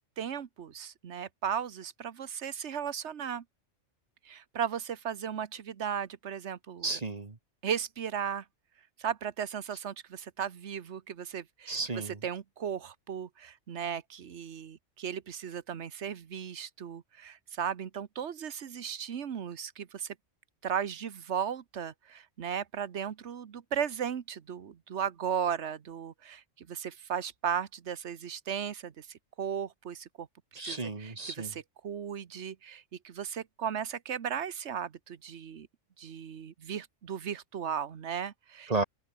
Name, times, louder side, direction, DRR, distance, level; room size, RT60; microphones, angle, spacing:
voice 1, 0.0-3.4 4.2-6.9 7.6-8.4 9.0-11.8 12.2-20.1 20.6-30.3 30.6-35.7 36.0-38.7, right 8 dB, 65° right, 1.3 m, -36 dB
voice 2, 6.8-7.4 11.7-12.2 30.5-31.5 38.7-38.8, right 3 dB, 30° right, 1.6 m, -33 dB
open air
omnidirectional pair, 1.3 m